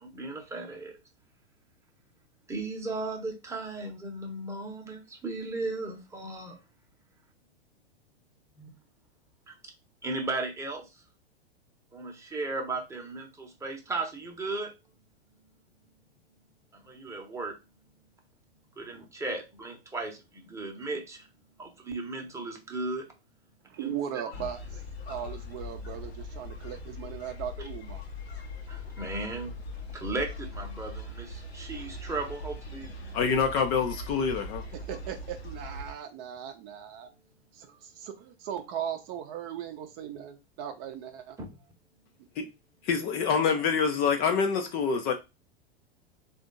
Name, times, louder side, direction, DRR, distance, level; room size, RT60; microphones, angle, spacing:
voice 1, 0.0-1.0 2.5-6.6 8.6-8.7 9.5-9.6 10.0-10.9 11.9-14.7 16.7-17.6 18.8-21.3 21.6-23.1 23.8-24.2 28.7-29.5 29.9-32.9 41.4-41.6, right 3 dB, 10° right, 0.9 m, -36 dB
voice 2, 23.7-28.0 34.9-37.1 37.5-41.4, right 9 dB, 35° right, 0.6 m, -38 dB
sound 1, 24.3-35.9, left 2 dB, 70° left, 0.9 m, -41 dB
voice 3, 33.1-34.6 42.4-42.5 42.8-45.1, left 6 dB, 30° left, 0.5 m, -26 dB
3.4 x 2.5 x 3.8 m
figure-of-eight pair, 95°, 32 cm